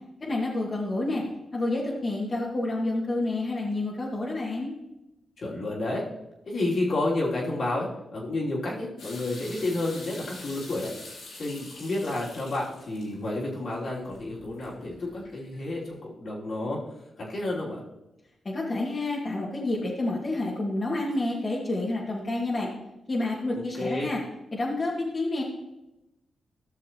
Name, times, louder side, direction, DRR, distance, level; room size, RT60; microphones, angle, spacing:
voice 1, 0.2-1.2 1.5-4.7 18.4-22.7 23.1-24.2 24.5-25.4, left 2 dB, 40° left, -5 dB, 2.2 m, -29 dB
voice 2, 5.4-6.0 6.4-10.9 11.4-16.8 17.2-17.8 23.5-24.1, left 2 dB, 60° left, -4 dB, 3.1 m, -30 dB
sound 1, 9.0-15.8, left 2 dB, 85° left, 4.0 m, -46 dB
15.5 x 6.3 x 3.0 m, 0.94 s
supercardioid pair, 50°, 0 cm